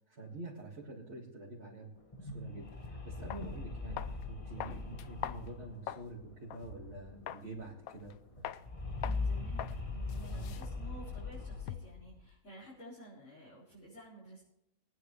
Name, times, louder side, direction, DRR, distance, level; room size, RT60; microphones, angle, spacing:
voice 1, 0.0-1.9 2.2-8.1 10.3-10.5, right 2 dB, 50° right, -5 dB, 2.5 m, -47 dB
sound 1, 2.0-7.3 7.6-7.7 7.9-12.3, left 3 dB, 25° left, 1.1 m, -41 dB
sound 2, 2.7-2.8 3.3-3.5 4.0-4.2 4.6-6.1 6.5-6.6 7.3-7.5 7.9-8.1 8.4-8.6 9.0-9.2 9.6-9.8 10.1-12.0, left 11 dB, 85° left, 1.1 m, -43 dB
voice 2, 9.0-14.4, right 2 dB, 55° left, -8 dB, 4.7 m, -52 dB
23.0 x 9.7 x 3.2 m, 0.84 s
omnidirectional pair, 1.5 m